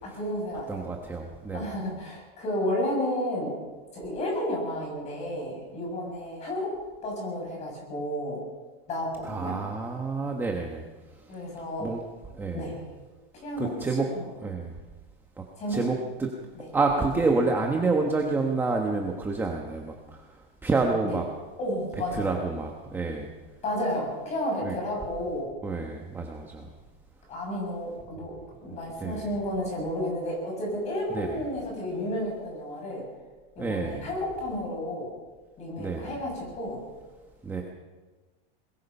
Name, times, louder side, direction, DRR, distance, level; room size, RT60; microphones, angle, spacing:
voice 1, 0.0-0.8 1.5-3.5 3.9-6.7 7.0-8.4 8.9-9.5 11.3-11.9 12.5-12.8 13.4-13.7 14.1-14.3 15.6-15.8 16.6-16.7 21.0-21.2 21.6-22.3 23.6-25.5 27.3-33.1 33.6-35.1 35.6-36.8, left 1 dB, 20° left, -1 dB, 7.5 m, -32 dB
voice 2, 0.7-1.7 9.2-10.8 11.8-12.0 12.3-12.7 13.6-14.1 14.4-14.7 15.7-16.3 16.7-20.2 20.6-21.2 22.1-23.3 24.6-24.7 25.6-26.7 28.7-29.3 31.1-31.4 33.6-34.1 35.8-36.1 37.4-37.6, right 3 dB, 5° right, 1 dB, 1.2 m, -28 dB
22.0 x 21.5 x 5.5 m, 1.3 s
supercardioid pair, 175°, 30 cm